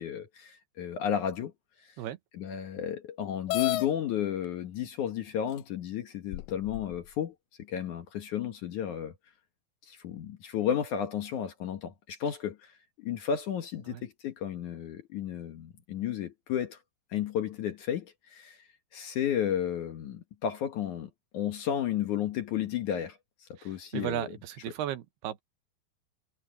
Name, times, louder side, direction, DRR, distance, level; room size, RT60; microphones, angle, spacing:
voice 1, 0.0-1.5 1.8-1.9 2.3-7.3 7.7-9.1 9.9-16.8 17.1-18.6 18.9-24.3, left 9 dB, 60° left, 2.4 m, -33 dB
sound 1, 3.5-3.9 4.9-5.0 5.6-5.7 6.3-7.0, left 13 dB, 85° left, 1.9 m, -31 dB
voice 2, 23.6-25.4, right 11 dB, 80° right, 3.1 m, -35 dB
omnidirectional pair, 4.6 m